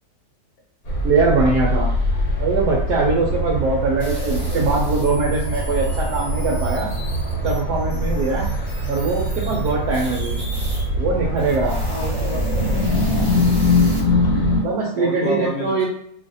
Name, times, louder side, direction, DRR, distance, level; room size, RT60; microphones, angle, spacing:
sound 1, 0.9-14.6, left 1 dB, 60° left, 1.2 m, -22 dB
voice 1, 1.0-1.9 2.4-6.9 7.4-8.4 8.9-10.4 11.0-11.8 14.6-15.9, right 4 dB, 70° right, -4 dB, 1.1 m, -21 dB
sound 2, 4.0-10.8 11.3-14.0, equal, 20° right, 1.4 m, -35 dB
voice 2, 11.9-12.9 14.9-15.9, left 2 dB, 85° left, -1 dB, 1.4 m, -29 dB
3.1 x 2.4 x 2.6 m, 0.69 s
omnidirectional pair, 2.0 m